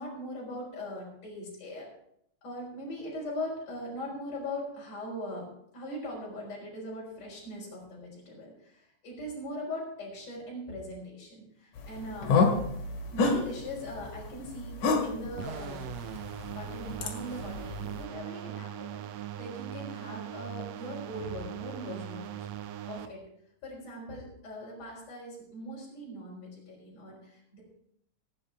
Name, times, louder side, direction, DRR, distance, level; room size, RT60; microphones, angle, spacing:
voice 1, 0.0-1.9 2.4-5.5 5.7-12.4 13.1-15.9 16.5-22.5 22.9-23.2 23.6-27.6, left 1 dB, 60° left, -6 dB, 5.5 m, -40 dB
sound 1, 11.8-18.0, left 4 dB, 80° left, 3.4 m, -30 dB
sound 2, 15.4-23.1, right 11 dB, 75° right, 1.7 m, -40 dB
17.0 x 9.0 x 4.5 m, 0.72 s
omnidirectional pair, 3.4 m